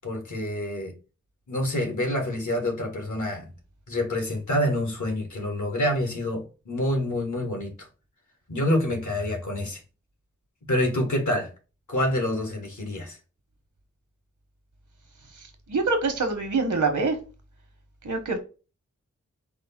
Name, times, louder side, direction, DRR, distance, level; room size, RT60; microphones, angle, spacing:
voice 1, 0.0-0.9 1.5-3.5 3.9-7.7 8.5-9.8 10.7-11.5 11.9-13.2, left 1 dB, 80° left, 1.6 m, -27 dB
voice 2, 15.7-17.2 18.0-18.4, right 3 dB, 80° right, 1.0 m, -25 dB
4.7 x 2.0 x 4.2 m
wide cardioid pair, 50°, 30 cm